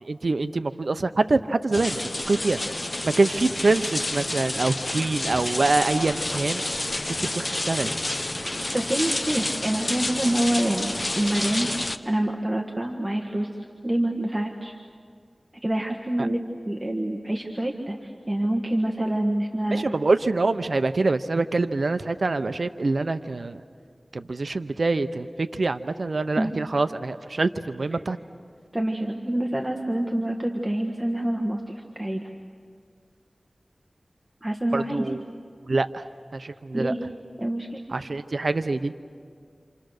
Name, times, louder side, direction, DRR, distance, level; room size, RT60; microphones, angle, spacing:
voice 1, 0.0-2.6 3.0-6.6 7.2-8.0 16.2-16.3 19.7-23.6 24.1-28.2 34.7-35.2 35.7-36.0 36.3-36.9 37.9-38.9, right 3 dB, 70° right, 10 dB, 0.7 m, -25 dB
sound 1, 1.7-12.0, left 1 dB, 35° left, 1.0 m, -29 dB
voice 2, 8.7-11.7 12.0-13.5 13.8-14.7 15.6-19.9 26.3-26.5 28.7-32.2 34.4-35.1 36.7-37.0 37.4-37.8, right 1 dB, 20° right, 1 dB, 1.6 m, -26 dB
28.5 x 27.5 x 6.5 m, 2.1 s
wide cardioid pair, 75°, 0 cm